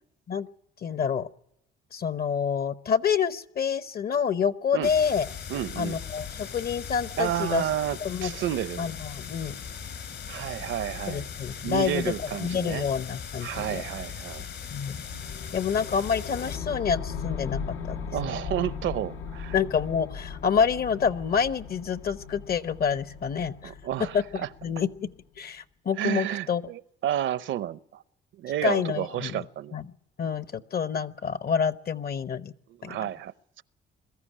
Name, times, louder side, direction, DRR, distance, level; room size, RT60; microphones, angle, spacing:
voice 1, 0.8-1.3 1.9-5.3 5.8-7.6 8.0-8.3 8.8-9.6 11.1-12.1 12.4-13.8 14.7-15.0 15.5-17.6 17.9-18.0 19.5-23.7 24.1-25.1 25.4-26.6 28.6-29.4 29.7-29.8 30.2-32.5 32.8-33.0, left 6 dB, 50° left, 0.9 m, -27 dB
sound 1, 4.8-16.6, left 7 dB, 65° left, 4.3 m, -39 dB
voice 2, 5.5-6.0 7.2-8.9 10.3-11.3 11.6-12.9 13.4-14.4 18.1-19.6 23.6-24.5 26.0-28.0 28.3-29.8 32.7-33.6, right 12 dB, 75° right, 0.7 m, -31 dB
sound 2, 15.1-25.2, left 6 dB, 90° left, 1.2 m, -38 dB
22.0 x 14.0 x 10.0 m
cardioid pair, 90°, 20 cm